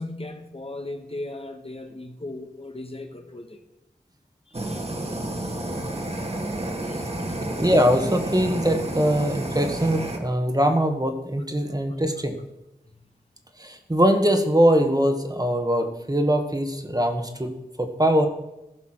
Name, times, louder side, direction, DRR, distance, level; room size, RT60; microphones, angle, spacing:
voice 1, 0.0-3.6 4.5-4.8 6.8-7.4, left 2 dB, 35° left, 5 dB, 1.5 m, -37 dB
Fire, 4.5-10.2, right 1 dB, 40° right, 2.0 m, -30 dB
voice 2, 7.6-12.4 13.6-18.3, equal, 20° right, 5 dB, 1.8 m, -22 dB
15.5 x 5.9 x 6.1 m, 0.94 s
cardioid pair, 50°, 17 cm